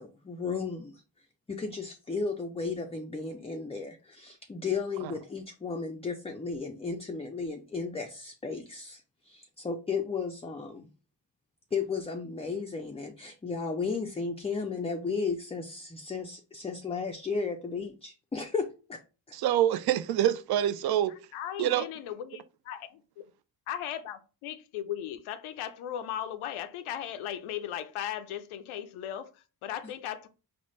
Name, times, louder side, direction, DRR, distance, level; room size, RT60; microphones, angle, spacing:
voice 1, 0.0-10.9 11.7-19.0 19.3-19.4 29.8-29.9, left 4 dB, 15° left, 0.4 m, -34 dB
voice 2, 19.3-21.1 21.6-21.8, right 12 dB, 50° right, 0.5 m, -26 dB
voice 3, 21.3-23.0 23.7-30.3, left 10 dB, 85° left, 0.5 m, -37 dB
4.1 x 2.1 x 3.1 m
supercardioid pair, 60°, 48 cm